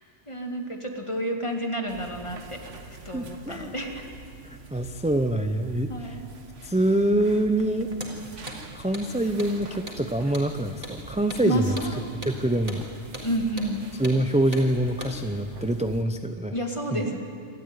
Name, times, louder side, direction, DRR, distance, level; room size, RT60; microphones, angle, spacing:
voice 1, 0.3-2.6 2.9-4.1 5.9-6.2 11.4-12.0 13.2-13.9 16.5-17.2, right 1 dB, 25° left, 2 dB, 2.3 m, -30 dB
sound 1, 1.9-16.0, right 4 dB, 70° right, 1.8 m, -45 dB
voice 2, 3.1-3.7 4.5-6.2 6.6-7.9 8.7-11.8 12.2-12.9 14.0-16.5 16.9-17.0, right 1 dB, 10° right, 6 dB, 0.5 m, -25 dB
Hammer, 8.0-8.2 8.5-8.6 8.9-9.1 9.4-9.5 9.9-10.0 10.3-10.5 10.8-11.0 11.3-11.5 11.8-11.9 12.2-12.4 12.7-12.8 13.1-13.3 13.6-13.7 14.0-14.2 14.5-14.7 15.0-15.2, equal, 30° right, 3.9 m, -38 dB
27.5 x 13.5 x 9.5 m, 2.2 s
omnidirectional pair, 1.3 m